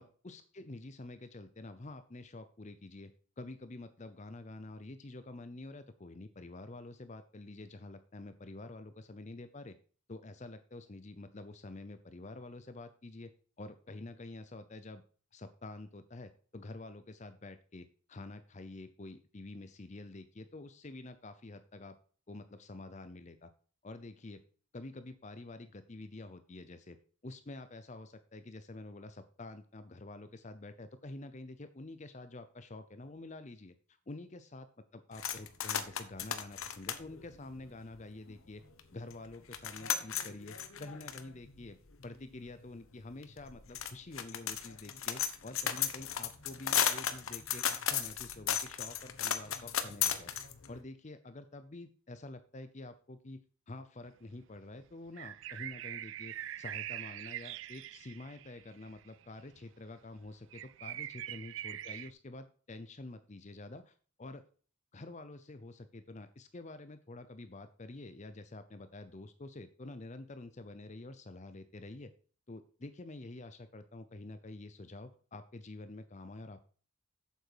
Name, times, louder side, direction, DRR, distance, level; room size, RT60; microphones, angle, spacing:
voice 1, 0.0-3.1 3.4-9.8 10.1-13.3 13.6-15.0 15.3-22.0 22.3-23.5 23.8-24.4 24.7-27.0 27.2-34.7 34.9-38.6 38.9-41.8 42.0-50.3 50.7-53.4 53.7-64.4 64.9-72.1 72.5-76.7, left 2 dB, 35° left, 11 dB, 0.6 m, -48 dB
sound 1, 35.1-38.3 38.8-38.9 39.1-50.8, left 9 dB, 80° left, 1.2 m, -35 dB
sound 2, 54.1-54.2 54.9-59.3 59.6-59.7 59.9-60.0 60.2-62.1, right 12 dB, 60° right, 0.3 m, -43 dB
8.2 x 8.0 x 4.7 m, 0.41 s
head